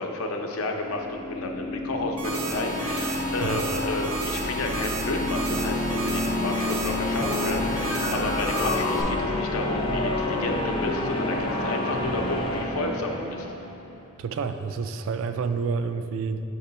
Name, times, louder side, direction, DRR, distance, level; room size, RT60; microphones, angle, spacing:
voice 1, 0.0-13.5, left 2 dB, 85° left, 3 dB, 0.6 m, -31 dB
sound 1, 0.9-13.8, left 2 dB, 25° left, 0.4 m, -29 dB
sound 2, 2.2-9.0, right 2 dB, 85° right, 0.8 m, -33 dB
sound 3, 7.2-12.4, left 2 dB, 50° left, 0.8 m, -33 dB
voice 2, 14.2-16.4, right 5 dB, 70° right, 9 dB, 0.3 m, -29 dB
6.7 x 4.3 x 4.1 m, 2.7 s
head